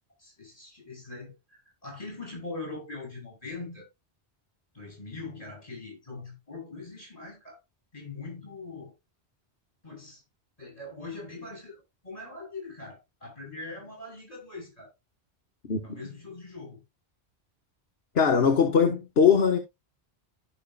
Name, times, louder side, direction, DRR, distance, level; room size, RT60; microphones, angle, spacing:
voice 1, 0.2-3.9 4.7-7.6 7.9-8.9 9.8-10.2 10.6-14.9 15.8-16.8, left 3 dB, 35° left, 6.2 m, -42 dB
voice 2, 18.1-19.6, left 6 dB, 70° left, 1.4 m, -21 dB
15.0 x 5.6 x 2.2 m
omnidirectional pair, 1.1 m